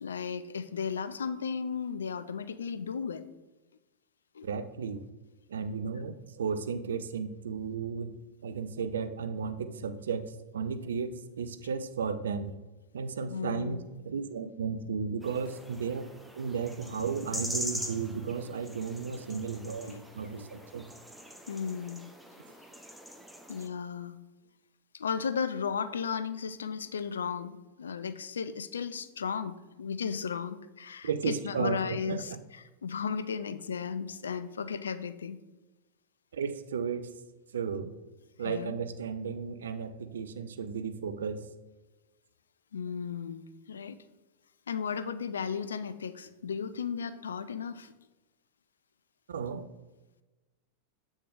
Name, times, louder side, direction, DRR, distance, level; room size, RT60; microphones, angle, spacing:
voice 1, 0.0-3.2 4.3-4.5 13.3-13.8 19.8-20.1 20.3-20.5 21.5-22.0 23.5-24.2 24.9-32.3 32.8-35.4 38.4-38.8 42.7-44.0 44.7-47.9, left 6 dB, 70° left, 13 dB, 0.4 m, -35 dB
voice 2, 4.4-5.0 5.5-8.1 8.4-12.5 12.9-16.0 16.3-20.9 31.0-32.4 36.3-37.1 37.5-37.9 38.4-41.4 49.3-49.7, right 6 dB, 65° right, 11 dB, 0.4 m, -34 dB
sound 1, 15.2-23.7, equal, ahead, 0.7 m, -42 dB
7.6 x 6.2 x 2.4 m, 1.1 s
figure-of-eight pair, 90°, 0 cm